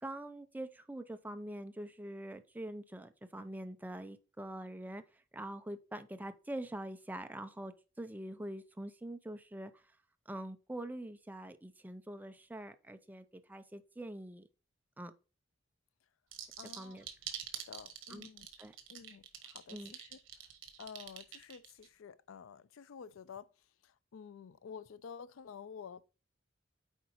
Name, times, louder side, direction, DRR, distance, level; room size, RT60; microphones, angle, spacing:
voice 1, 0.0-5.0 5.3-9.7 10.3-14.5 15.0-15.1 16.8-17.0 18.1-18.3 18.6-18.7 19.7-19.9, right 1 dB, 10° right, 0.4 m, -44 dB
sound 1, 16.3-21.9, right 10 dB, 70° right, 1.2 m, -45 dB
voice 2, 16.6-17.1 17.7-18.5 18.9-20.2 20.8-23.5 23.8-26.0, left 6 dB, 85° left, 0.4 m, -50 dB
8.0 x 4.7 x 2.9 m
head